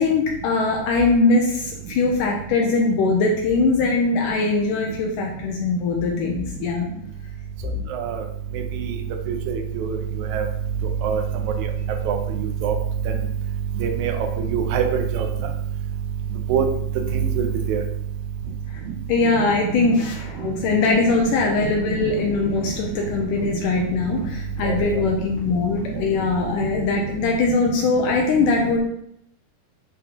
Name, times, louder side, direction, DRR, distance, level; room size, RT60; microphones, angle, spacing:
voice 1, 0.0-6.9 18.7-18.8 19.1-28.8, left 3 dB, 75° left, 1 dB, 2.0 m, -21 dB
voice 2, 7.9-8.2 8.7-8.9 9.3-10.0 10.3-10.5 11.0-11.2 12.1-12.7 13.8-15.3 16.5-16.7 17.1-17.8 19.6-19.7 21.6-21.7 22.0-22.1 24.6-24.7, right 7 dB, 80° right, 3 dB, 1.7 m, -23 dB
sound 1, 21.0-27.3, right 1 dB, 50° left, 1.8 m, -40 dB
10.5 x 3.9 x 2.9 m, 0.75 s
omnidirectional pair, 4.2 m